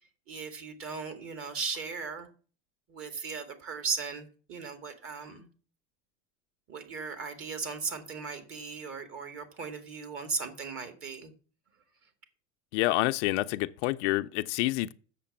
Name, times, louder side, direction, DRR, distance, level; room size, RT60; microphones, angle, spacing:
voice 1, 0.3-2.3 2.9-5.5 6.7-11.3, right 5 dB, 35° right, 2.3 m, -37 dB
voice 2, 12.7-14.9, left 18 dB, 70° left, 0.6 m, -28 dB
7.6 x 6.8 x 7.1 m
supercardioid pair, 135°, 37 cm